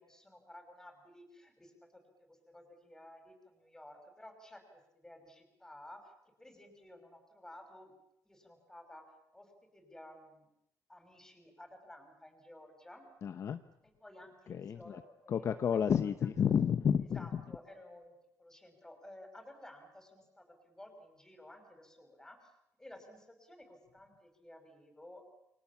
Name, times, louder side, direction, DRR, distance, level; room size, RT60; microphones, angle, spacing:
voice 1, 0.0-6.1 6.4-7.9 8.2-9.0 9.3-10.5 10.9-13.1 13.8-15.8 16.2-16.3 17.1-18.1 18.4-22.5 22.8-25.2, left 1 dB, 10° left, 5 dB, 6.0 m, -54 dB
voice 2, 13.2-13.6 14.5-15.0 15.3-17.5, left 8 dB, 45° left, 9 dB, 0.9 m, -31 dB
29.5 x 24.0 x 7.2 m, 0.86 s
cardioid pair, 140°, 7 cm